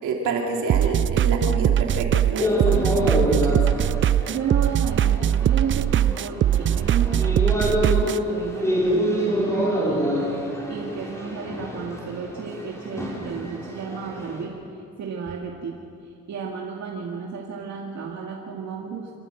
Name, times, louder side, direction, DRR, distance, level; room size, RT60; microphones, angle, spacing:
voice 1, 0.0-3.6, right 3 dB, 80° right, 0 dB, 3.4 m, -28 dB
sound 1, 0.7-8.2, right 10 dB, 40° right, 0.4 m, -21 dB
sound 2, 2.4-14.4, equal, 10° left, 4.9 m, -27 dB
voice 2, 4.3-10.2 10.7-14.5 15.0-15.8 16.3-19.1, right 6 dB, 65° right, -1 dB, 2.2 m, -33 dB
27.0 x 13.0 x 7.8 m, 2.5 s
cardioid pair, 90°, 30 cm